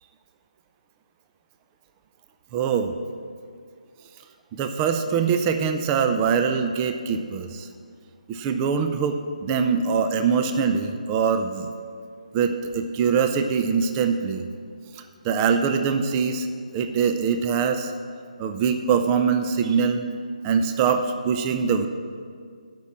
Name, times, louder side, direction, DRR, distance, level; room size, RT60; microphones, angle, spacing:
voice 1, 2.5-2.9 4.6-7.7 8.3-9.2 9.4-11.7 12.3-14.5 15.0-16.5 16.7-17.9 18.4-20.1 20.4-21.9, right 6 dB, 20° right, 7 dB, 0.5 m, -23 dB
11.5 x 6.0 x 8.5 m, 2.1 s
figure-of-eight pair, 150°, 4 cm